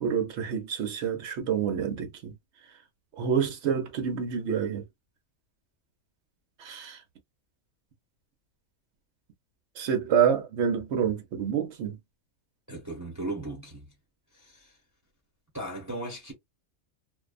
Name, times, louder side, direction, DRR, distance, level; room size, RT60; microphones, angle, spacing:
voice 1, 0.0-2.3 3.2-4.8 6.6-7.0 9.8-12.0, right 7 dB, 60° right, 1.0 m, -27 dB
voice 2, 12.7-13.9 14.3-14.8 15.5-16.3, right 2 dB, 15° right, 1.1 m, -37 dB
2.6 x 2.3 x 2.4 m
omnidirectional pair, 1.5 m